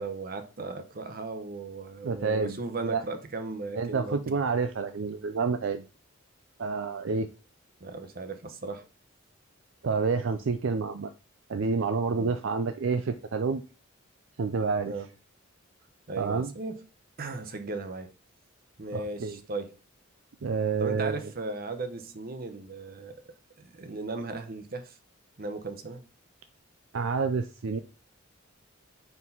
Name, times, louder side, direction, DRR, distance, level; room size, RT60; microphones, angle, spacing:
voice 1, 0.0-4.3 7.8-8.8 12.1-12.3 14.9-15.1 16.1-16.8 17.2-18.1 18.8-19.8 20.8-23.2 23.6-25.0 25.4-26.0, right 3 dB, 45° right, 0.9 m, -36 dB
voice 2, 2.0-2.5 2.8-3.0 3.7-5.8 6.6-7.3 9.8-11.1 11.5-13.6 14.4-14.9 16.2-16.5 18.9-19.4 20.4-21.2 26.9-27.8, right 4 dB, 65° right, 0.5 m, -28 dB
4.6 x 3.9 x 5.5 m
head